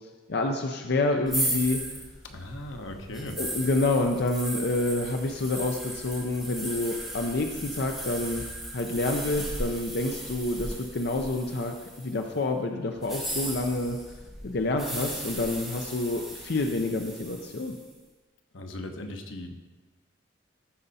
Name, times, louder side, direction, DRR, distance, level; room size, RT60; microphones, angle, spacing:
voice 1, 0.3-1.8 3.4-8.4 8.7-14.0 14.4-17.7, left 2 dB, 60° left, 3 dB, 0.6 m, -28 dB
sound 1, 1.3-12.2 13.0-17.8, right 1 dB, ahead, 1.8 m, -36 dB
voice 2, 2.2-3.4 18.5-19.5, left 1 dB, 90° left, 5 dB, 1.0 m, -38 dB
14.0 x 5.4 x 4.1 m, 1.2 s
head